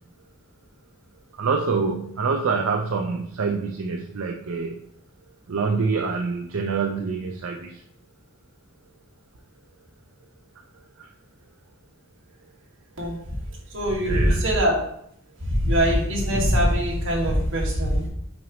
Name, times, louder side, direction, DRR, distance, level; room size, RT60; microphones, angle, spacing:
voice 1, 1.3-4.8 5.5-7.8 11.0-11.1 14.0-14.5, right 4 dB, 90° right, 2 dB, 0.5 m, -26 dB
voice 2, 13.7-14.8 15.6-18.1, equal, 70° right, -2 dB, 1.9 m, -22 dB
6.1 x 5.1 x 3.1 m, 0.70 s
head